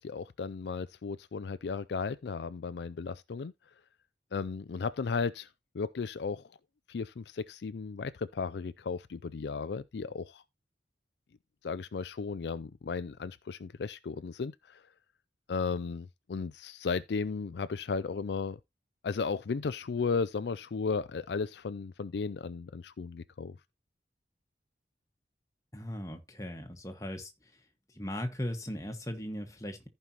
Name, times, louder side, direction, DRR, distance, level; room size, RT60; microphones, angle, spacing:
voice 1, 0.0-3.5 4.3-5.5 5.7-6.5 6.9-10.4 11.6-14.8 15.5-18.6 19.0-23.6, left 5 dB, 70° left, 0.4 m, -35 dB
voice 2, 25.7-27.3 27.9-29.9, equal, 20° left, 1.6 m, -38 dB
14.5 x 5.4 x 2.9 m
head